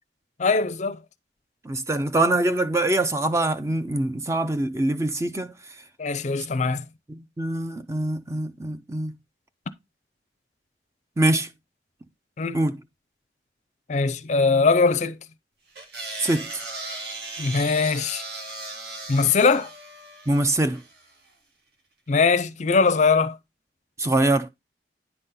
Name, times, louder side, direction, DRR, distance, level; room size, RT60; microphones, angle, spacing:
voice 1, 0.4-1.0 6.0-6.8 12.4-12.6 13.9-15.2 17.4-18.2 19.1-19.7 22.1-23.4, left 4 dB, 40° left, 0.5 m, -21 dB
voice 2, 1.6-5.5 7.1-9.1 11.2-11.5 12.5-12.8 16.2-16.6 20.3-20.8 24.0-24.5, right 2 dB, 15° right, 0.4 m, -24 dB
sound 1, 15.8-21.1, right 3 dB, 60° right, 1.6 m, -37 dB
9.7 x 4.1 x 3.7 m
head